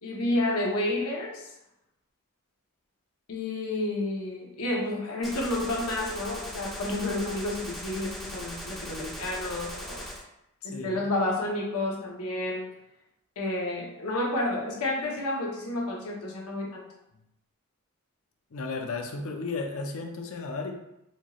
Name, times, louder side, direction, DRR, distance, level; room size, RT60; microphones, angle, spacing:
voice 1, 0.0-1.5 3.3-10.1 10.6-12.7 13.4-16.8, left 1 dB, 80° left, -2 dB, 0.9 m, -30 dB
Gunshot gunfire, 5.2-10.2, equal, ahead, 0.4 m, -39 dB
voice 2, 10.6-11.0 18.5-20.7, left 3 dB, 65° left, 3 dB, 0.5 m, -34 dB
4.4 x 2.4 x 3.0 m, 0.84 s
head